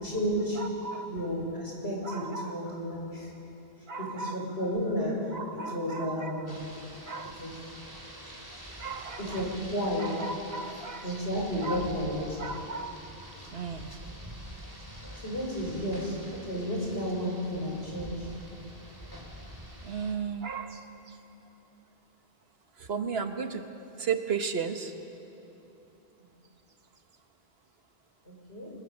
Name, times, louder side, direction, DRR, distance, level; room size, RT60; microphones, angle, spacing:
voice 1, 0.0-0.6 1.1-3.3 4.0-5.2 5.5-6.6 7.4-7.6 9.2-10.1 11.0-12.2 15.2-18.3 28.3-28.7, equal, 85° left, -2 dB, 5.8 m, -32 dB
voice 2, 0.6-1.1 2.0-2.6 3.9-4.4 5.3-6.3 7.1-7.4 8.8-9.4 10.0-11.0 11.6-11.9 12.4-13.0 13.5-13.9 19.8-20.8 22.8-23.6 24.0-24.9, right 5 dB, 75° right, 7 dB, 1.5 m, -35 dB
Rain, 6.5-20.1, equal, 20° right, 3.1 m, -46 dB
26.5 x 21.5 x 7.1 m, 2.9 s
omnidirectional pair, 1.0 m